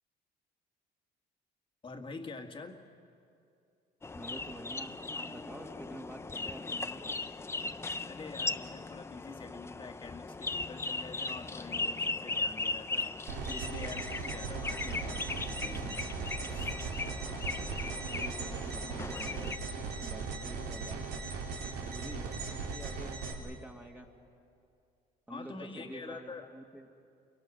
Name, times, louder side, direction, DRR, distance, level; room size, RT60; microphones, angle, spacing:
voice 1, 1.8-2.8 8.1-13.1 13.5-16.1 16.5-16.7 25.3-26.5, left 4 dB, 30° left, 5 dB, 1.9 m, -46 dB
sound 1, 4.0-19.6, left 3 dB, 15° left, 0.6 m, -38 dB
voice 2, 4.1-7.1 18.1-21.2 21.8-23.1 23.4-24.1 25.3-26.9, right 1 dB, 10° right, 0 dB, 2.1 m, -48 dB
sound 2, 13.3-23.3, right 4 dB, 85° right, 3.0 m, -38 dB
30.0 x 23.0 x 6.3 m, 2.6 s
cardioid pair, 110°, 17 cm